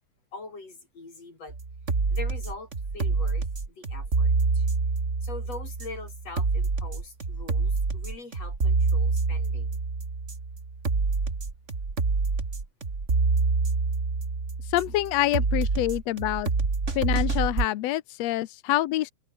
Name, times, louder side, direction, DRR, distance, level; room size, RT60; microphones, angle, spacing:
voice 1, 0.3-1.6 2.1-4.7 5.2-9.8, left 3 dB, 50° left, 8.5 m, -43 dB
sound 1, 1.5-17.6, right 4 dB, 25° right, 2.4 m, -27 dB
voice 2, 14.6-16.5 16.9-19.1, left 15 dB, 70° left, 1.8 m, -26 dB
omnidirectional pair, 3.5 m